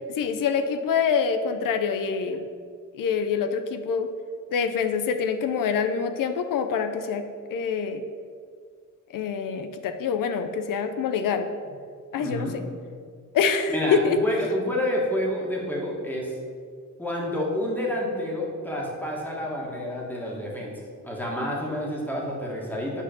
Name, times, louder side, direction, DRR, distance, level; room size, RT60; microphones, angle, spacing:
voice 1, 0.1-2.4 2.9-4.1 4.5-8.0 9.1-11.5 12.1-12.5 13.3-14.2, left 6 dB, 85° left, 8 dB, 0.7 m, -25 dB
voice 2, 12.2-12.5 13.7-16.4 17.0-20.7 21.0-23.0, left 1 dB, 5° left, -3 dB, 1.7 m, -29 dB
10.0 x 4.4 x 7.0 m, 2.1 s
wide cardioid pair, 175°, 32 cm